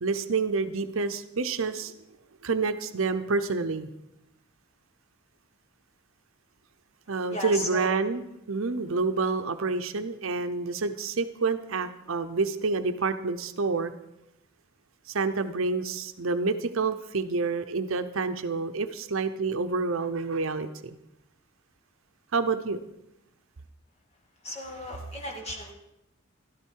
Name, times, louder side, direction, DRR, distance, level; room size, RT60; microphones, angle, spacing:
voice 1, 0.0-1.9 2.4-3.9 7.1-13.9 15.1-21.0 22.3-22.8, right 4 dB, 70° right, 9 dB, 0.7 m, -28 dB
voice 2, 7.3-7.9 24.4-25.7, left 1 dB, 30° left, 1 dB, 2.2 m, -35 dB
13.5 x 12.5 x 4.6 m, 0.87 s
head